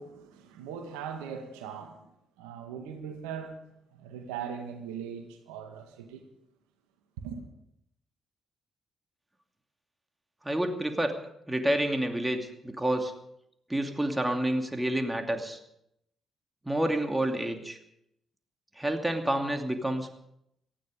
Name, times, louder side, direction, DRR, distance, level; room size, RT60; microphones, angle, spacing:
voice 1, 0.0-2.1 2.4-3.6 3.9-6.2 7.2-7.4, right 7 dB, 80° right, 1.9 m, -40 dB
voice 2, 10.4-11.1 11.5-13.1 13.7-15.6 16.7-17.8 18.8-20.1, right 1 dB, 10° right, 2.6 m, -29 dB
18.0 x 14.0 x 5.2 m
hypercardioid pair, 45°, 0 cm